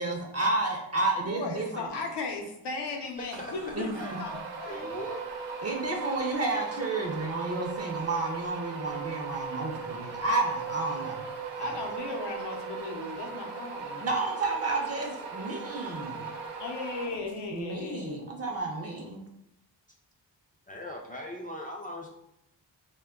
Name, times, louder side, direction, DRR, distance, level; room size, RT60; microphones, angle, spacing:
voice 1, 0.0-1.9 3.7-4.2 5.6-11.3 11.6-11.8 14.0-16.2 17.5-19.2, right 2 dB, 35° right, 1 dB, 0.5 m, -31 dB
voice 2, 1.3-5.0 11.6-14.0 16.6-18.3, left 3 dB, 65° left, 3 dB, 0.7 m, -37 dB
sound 1, 3.3-17.6, right 5 dB, 85° right, 0.5 m, -38 dB
voice 3, 4.7-5.2 20.7-22.1, left 1 dB, 20° left, -1 dB, 0.4 m, -42 dB
2.2 x 2.1 x 3.6 m, 0.81 s
cardioid pair, 60°, 44 cm